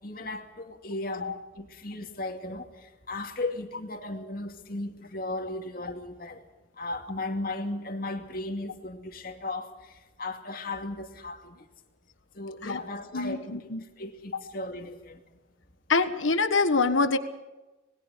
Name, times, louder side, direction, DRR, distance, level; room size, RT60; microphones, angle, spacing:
voice 1, 0.0-6.4 6.8-11.6 12.3-13.7 14.0-15.2, left 2 dB, 45° left, 2.4 m, -36 dB
voice 2, 13.1-13.8 15.9-17.2, left 3 dB, 85° left, 1.4 m, -25 dB
26.5 x 21.0 x 5.2 m
head